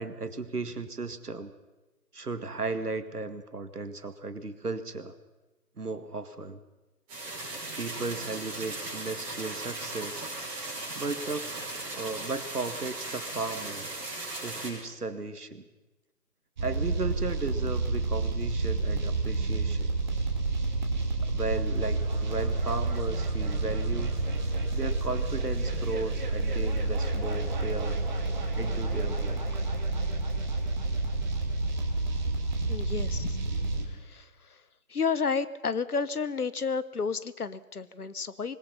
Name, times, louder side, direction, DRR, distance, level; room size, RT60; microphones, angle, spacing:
voice 1, 0.0-1.5 2.1-5.1 5.8-6.6 7.7-10.3 10.9-13.9 14.4-15.6 16.6-19.9 21.2-24.2 24.7-28.0 28.5-29.4, right 3 dB, 75° right, 10 dB, 2.1 m, -35 dB
sound 1, 7.1-14.7, right 2 dB, 15° right, 6.0 m, -37 dB
sound 2, 16.6-33.8, right 2 dB, 30° right, 2.4 m, -29 dB
voice 2, 32.7-33.4 33.9-34.6 34.9-38.6, left 5 dB, 70° left, 15 dB, 1.2 m, -31 dB
25.5 x 21.0 x 5.7 m, 1.1 s
figure-of-eight pair, 150°, 47 cm